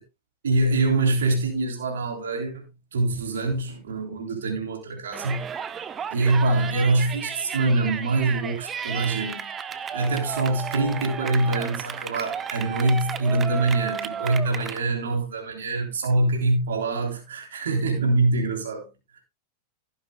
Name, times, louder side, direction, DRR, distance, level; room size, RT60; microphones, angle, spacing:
voice 1, 0.4-2.6 2.9-5.5 6.1-9.5 9.9-18.9 19.1-19.2, right 2 dB, 65° right, 3.4 m, -24 dB
Yell, 5.1-14.8, right 7 dB, 25° right, 1.1 m, -33 dB
15.5 x 10.5 x 2.3 m
figure-of-eight pair, 90°, 0 cm